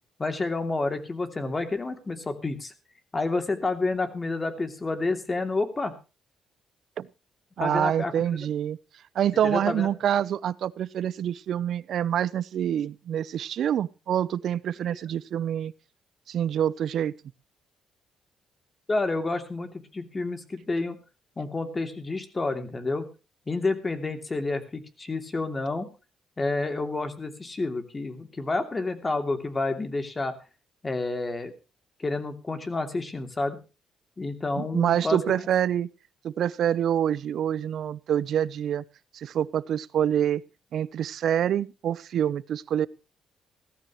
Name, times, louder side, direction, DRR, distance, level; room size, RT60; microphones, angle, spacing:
voice 1, 0.2-2.7 3.1-5.9 7.6-8.4 9.4-9.9 18.9-21.0 21.4-23.1 23.5-25.9 26.4-30.3 30.8-31.5 32.0-33.6 34.2-35.2, left 3 dB, 25° left, 7 dB, 2.8 m, -29 dB
voice 2, 7.6-8.8 9.1-15.7 16.3-17.1 34.6-35.9 36.2-38.8 39.1-40.4 40.7-42.9, right 10 dB, 70° right, 19 dB, 0.7 m, -26 dB
17.0 x 14.0 x 3.1 m, 0.31 s
cardioid pair, 90°, 0 cm